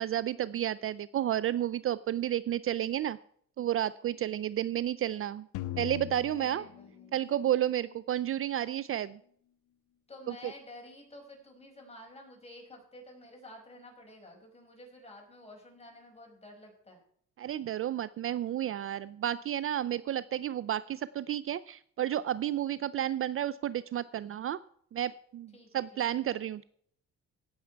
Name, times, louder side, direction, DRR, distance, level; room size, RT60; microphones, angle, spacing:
voice 1, 0.0-3.2 3.6-5.5 5.8-6.7 7.1-9.2 10.3-10.4 17.4-24.6 24.9-26.6, right 11 dB, 45° right, 18 dB, 0.4 m, -31 dB
sound 1, 5.5-7.7, left 15 dB, 85° left, 0.7 m, -40 dB
voice 2, 6.3-7.5 10.1-17.0 25.5-26.0, left 1 dB, 20° left, 1 dB, 5.1 m, -51 dB
17.0 x 7.1 x 4.6 m, 0.62 s
cardioid pair, 90°, 30 cm